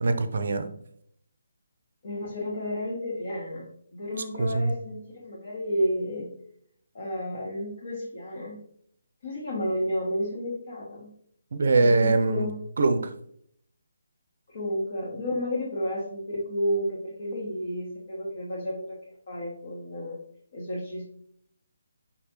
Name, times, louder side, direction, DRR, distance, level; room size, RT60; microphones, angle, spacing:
voice 1, 0.0-0.7 4.4-4.7 11.5-12.5 12.8-13.1, right 3 dB, 55° right, 9 dB, 0.5 m, -22 dB
voice 2, 2.0-6.3 6.9-8.6 9.2-11.1 11.8-12.6 14.5-19.0 19.3-20.2 20.5-21.1, equal, 50° left, -5 dB, 1.3 m, -31 dB
5.4 x 3.2 x 2.9 m, 0.66 s
figure-of-eight pair, 145°, 0 cm